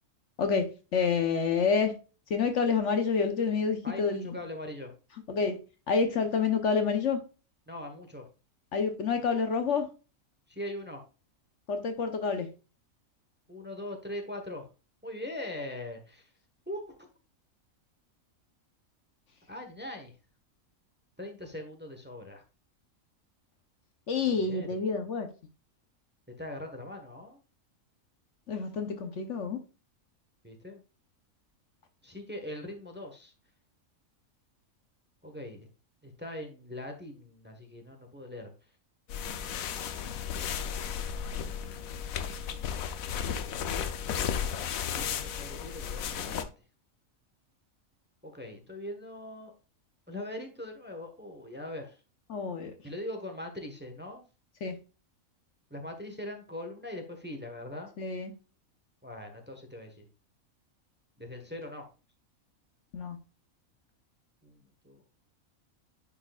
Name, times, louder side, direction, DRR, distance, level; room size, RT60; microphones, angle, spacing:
voice 1, 0.9-1.9 2.3-4.4 5.3-5.6 5.9-7.2 8.7-9.9 11.7-12.5 24.1-25.3 28.5-29.6 52.3-52.7 54.6-54.7 58.0-58.3 62.9-63.2, left 5 dB, 60° left, 1.2 m, -28 dB
voice 2, 3.8-4.9 7.7-8.3 10.5-11.0 13.5-14.7 15.0-16.3 16.7-17.1 19.5-20.1 21.2-22.4 24.3-24.8 26.4-27.4 30.4-30.8 32.0-33.3 35.2-35.7 36.0-38.5 43.1-43.5 44.9-46.5 48.2-49.5 50.1-52.0 52.8-54.2 55.7-57.9 59.0-60.0 61.2-61.8 64.4-65.0, left 1 dB, 10° right, 1.1 m, -41 dB
sound 1, 39.1-46.4, left 8 dB, 85° left, 1.1 m, -34 dB
9.9 x 4.7 x 2.4 m
omnidirectional pair, 1.4 m